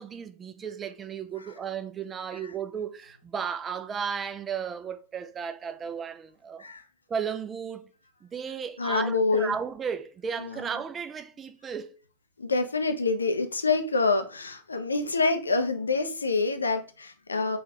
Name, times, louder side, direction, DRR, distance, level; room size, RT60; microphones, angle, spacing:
voice 1, 0.0-6.7 7.1-7.9 8.2-11.9, right 7 dB, 20° right, 0.3 m, -34 dB
voice 2, 8.8-9.5 10.4-10.7 12.4-17.6, left 3 dB, 75° left, 0.4 m, -26 dB
3.4 x 2.3 x 2.7 m
figure-of-eight pair, 90°, 0 cm